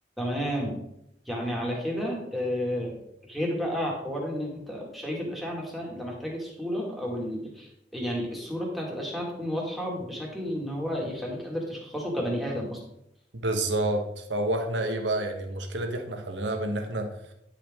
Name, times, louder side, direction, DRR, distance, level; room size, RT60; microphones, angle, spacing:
voice 1, 0.2-0.8 1.3-3.0 3.3-12.8, equal, ahead, -3 dB, 2.1 m, -31 dB
voice 2, 13.4-17.3, right 1 dB, 85° right, 5 dB, 1.2 m, -29 dB
9.9 x 5.9 x 3.6 m, 0.79 s
head